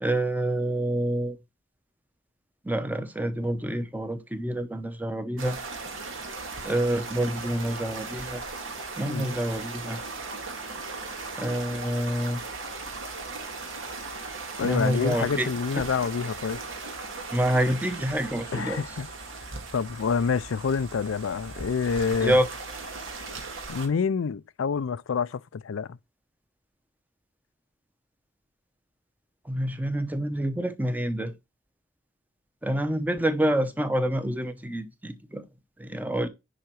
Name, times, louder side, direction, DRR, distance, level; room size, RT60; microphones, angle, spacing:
voice 1, 0.0-1.4 2.7-5.6 6.6-8.4 9.0-10.0 11.4-12.4 14.6-15.5 17.3-18.8 22.2-22.5 29.5-31.3 32.6-35.4 35.8-36.3, right 1 dB, 10° right, 0.8 m, -27 dB
sound 1, 5.4-23.9, right 3 dB, 80° right, 2.1 m, -38 dB
voice 2, 14.6-16.6 18.5-19.1 19.7-22.3 23.7-26.0, left 5 dB, 80° left, 0.4 m, -27 dB
10.5 x 3.9 x 4.6 m
head